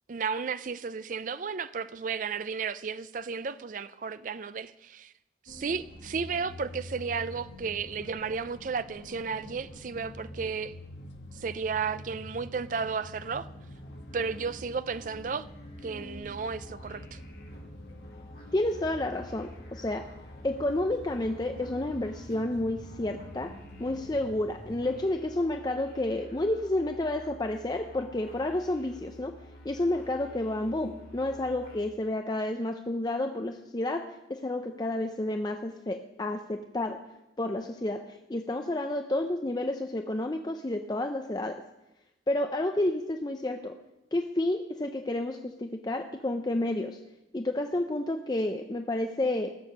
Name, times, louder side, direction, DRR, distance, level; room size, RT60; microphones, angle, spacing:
voice 1, 0.1-5.1 5.5-10.7 11.3-13.5 14.1-15.4 15.8-17.2, right 5 dB, 45° right, 0.4 m, -33 dB
sound 1, 5.5-25.0, left 1 dB, 70° left, 1.3 m, -47 dB
sound 2, 13.7-31.9, left 1 dB, 55° left, 2.5 m, -49 dB
voice 2, 18.5-20.1 20.4-29.3 29.6-37.0 37.4-41.6 42.3-43.8 44.1-47.0 47.3-49.5, left 1 dB, 20° left, 0.5 m, -30 dB
16.5 x 7.0 x 6.6 m
head